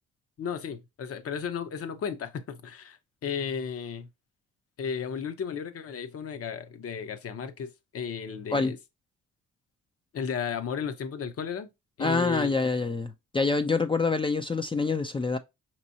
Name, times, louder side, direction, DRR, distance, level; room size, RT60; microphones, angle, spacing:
voice 1, 0.4-4.1 4.8-8.8 10.1-11.7 12.0-12.5, left 7 dB, 50° left, 0.8 m, -34 dB
voice 2, 12.0-15.4, left 4 dB, 15° left, 0.4 m, -26 dB
5.3 x 3.0 x 2.7 m
cardioid pair, 90°, 30 cm